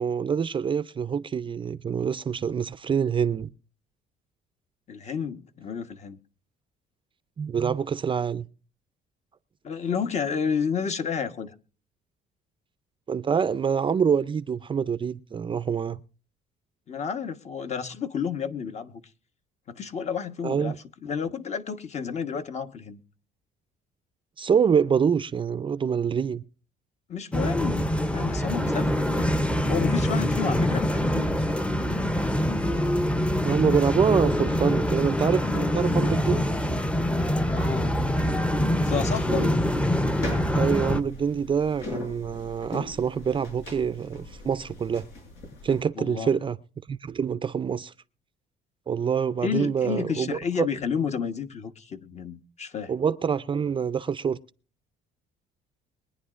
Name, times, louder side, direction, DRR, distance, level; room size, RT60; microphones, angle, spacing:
voice 1, 0.0-3.5 7.4-8.5 13.1-16.0 20.4-20.8 24.4-26.4 33.4-36.6 39.3-39.5 40.5-45.1 45.6-46.6 46.9-47.9 48.9-50.4 52.9-54.4, right 7 dB, 30° right, 0.5 m, -26 dB
voice 2, 4.9-6.2 9.6-11.5 16.9-19.0 19.7-20.7 21.0-23.0 27.1-29.3 29.7-31.3 37.5-38.0 38.8-39.6 45.9-46.3 49.4-52.9, left 6 dB, 40° left, 1.2 m, -31 dB
sound 1, 27.3-41.0, equal, 5° left, 0.7 m, -25 dB
sound 2, 39.8-45.8, left 2 dB, 85° left, 6.7 m, -40 dB
23.0 x 10.0 x 2.5 m
cardioid pair, 110°, 17 cm